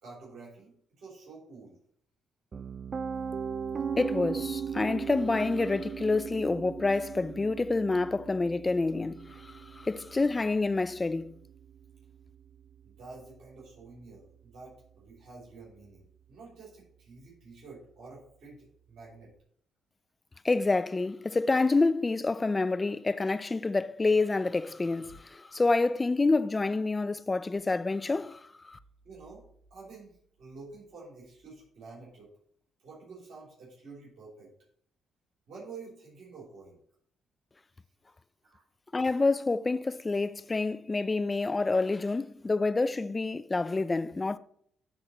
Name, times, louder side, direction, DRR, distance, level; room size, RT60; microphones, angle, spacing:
voice 1, 0.0-1.8 12.8-19.3 25.0-25.2 29.0-29.4 29.7-32.3 32.8-34.5 35.5-36.8 38.4-38.6, right 4 dB, 65° right, 3.2 m, -49 dB
Piano, 2.5-14.4, right 6 dB, 45° right, 0.4 m, -39 dB
voice 2, 4.0-11.3 20.4-28.8 38.9-44.4, left 3 dB, 30° left, 0.5 m, -28 dB
11.5 x 4.0 x 3.1 m
hypercardioid pair, 50°, 0 cm